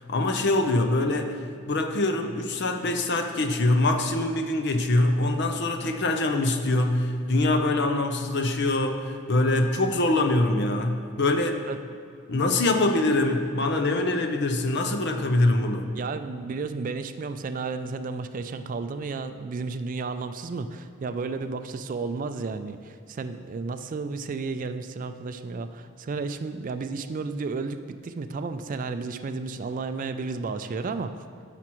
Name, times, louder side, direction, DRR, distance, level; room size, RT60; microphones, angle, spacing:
voice 1, 0.1-1.3 1.7-11.6 12.3-16.0, left 2 dB, 55° left, 5 dB, 0.7 m, -24 dB
voice 2, 15.9-31.1, right 4 dB, 40° right, 9 dB, 0.3 m, -32 dB
14.5 x 5.9 x 3.0 m, 2.3 s
head